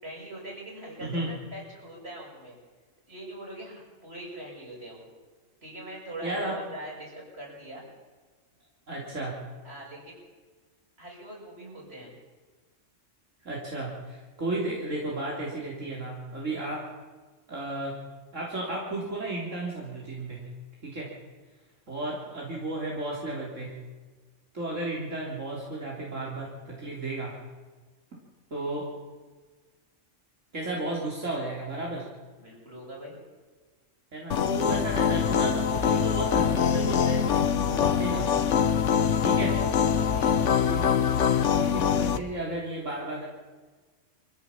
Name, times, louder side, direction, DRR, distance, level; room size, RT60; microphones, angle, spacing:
voice 1, 0.0-2.6 3.1-5.1 5.6-7.8 9.6-10.2 11.0-12.1 32.4-33.2 39.1-40.4, right 1 dB, 55° right, -3 dB, 7.0 m, -42 dB
voice 2, 1.0-1.3 6.2-6.6 8.9-9.4 13.4-16.8 17.5-18.0 18.3-20.4 20.8-21.1 21.9-23.7 24.5-27.4 28.5-28.8 30.5-32.1 34.1-37.3 37.6-38.3 39.2-39.5 40.5-41.2 41.5-43.3, right 2 dB, 85° right, -4 dB, 4.0 m, -33 dB
sound 1, 34.3-42.2, left 7 dB, 75° left, 1.2 m, -24 dB
24.0 x 16.0 x 7.3 m, 1.3 s
omnidirectional pair, 1.3 m